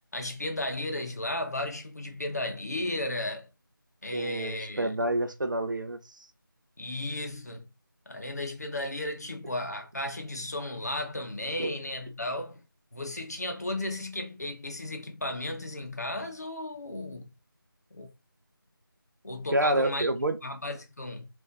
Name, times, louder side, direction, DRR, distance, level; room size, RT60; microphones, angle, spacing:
voice 1, 0.1-3.5 4.0-4.9 6.8-7.7 8.1-12.6 12.9-17.3 17.9-18.1 19.2-20.1 20.4-21.3, left 1 dB, 45° left, 0.7 m, -34 dB
voice 2, 4.1-6.0 11.6-11.7 19.5-20.4, right 1 dB, 60° right, 0.5 m, -28 dB
3.8 x 2.5 x 2.5 m
figure-of-eight pair, 175°, 12 cm